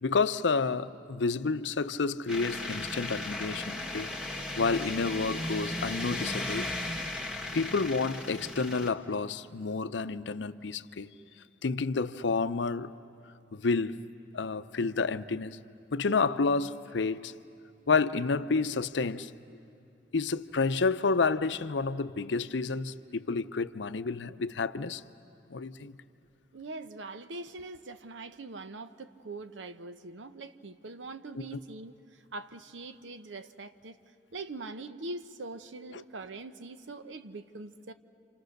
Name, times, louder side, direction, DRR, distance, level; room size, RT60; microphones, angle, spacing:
voice 1, 0.0-4.2 4.6-6.7 7.5-11.1 11.6-12.9 13.5-14.1 14.3-15.6 15.9-17.3 17.9-19.3 20.1-25.0 25.5-26.0, left 4 dB, 80° left, 0.6 m, -30 dB
sound 1, 2.3-8.9, left 1 dB, 5° right, 1.4 m, -36 dB
voice 2, 26.5-34.0 34.3-37.9, right 2 dB, 90° right, 0.8 m, -43 dB
30.0 x 27.0 x 6.6 m
head